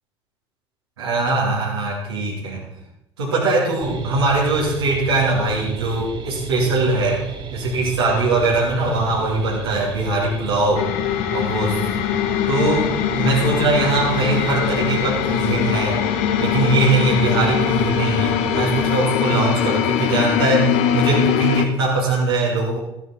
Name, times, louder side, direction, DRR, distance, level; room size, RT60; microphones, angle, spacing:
voice 1, 1.0-2.6 3.2-7.2 7.5-10.9 11.3-11.8 12.5-16.0 16.4-22.8, right 2 dB, 80° right, -6 dB, 2.6 m, -21 dB
sound 1, 3.8-19.0, right 5 dB, 35° right, 1.5 m, -33 dB
sound 2, 10.8-21.7, left 10 dB, 65° left, 0.8 m, -22 dB
13.0 x 10.0 x 4.4 m, 0.89 s
figure-of-eight pair, 60°, 13 cm